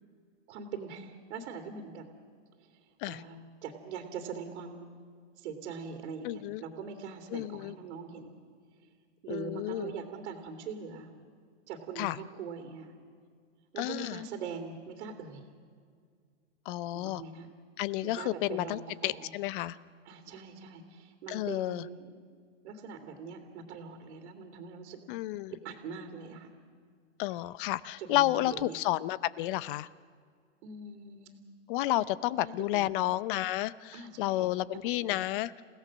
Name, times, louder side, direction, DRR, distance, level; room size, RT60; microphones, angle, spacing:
voice 1, 0.5-2.0 2.6-2.8 3.0-4.9 5.4-8.3 9.2-11.1 11.7-12.9 13.7-15.4 16.9-17.5 18.0-19.3 20.0-22.2 22.6-25.0 25.5-26.5 28.0-28.8 30.6-31.3 31.9-32.0 32.4-32.8 33.9-34.5 34.7-35.2, right 5 dB, 60° right, 4 dB, 2.8 m, -42 dB
voice 2, 6.2-6.6 7.3-7.7 9.3-9.9 12.0-12.2 13.8-14.2 16.7-17.2 17.8-19.8 21.3-21.9 25.1-25.6 27.2-29.9 31.7-35.6, left 16 dB, 45° left, 18 dB, 0.7 m, -31 dB
29.0 x 17.0 x 6.4 m, 2.1 s
hypercardioid pair, 130°, 38 cm